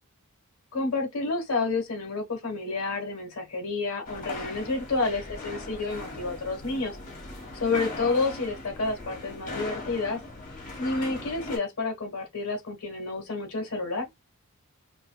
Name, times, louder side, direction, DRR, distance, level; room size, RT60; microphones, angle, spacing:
voice 1, 0.7-7.0 7.5-10.2 10.8-14.1, left 3 dB, 75° left, 1.3 m, -29 dB
sound 1, 4.0-11.6, left 2 dB, 35° left, 1.4 m, -39 dB
5.1 x 2.3 x 2.3 m
head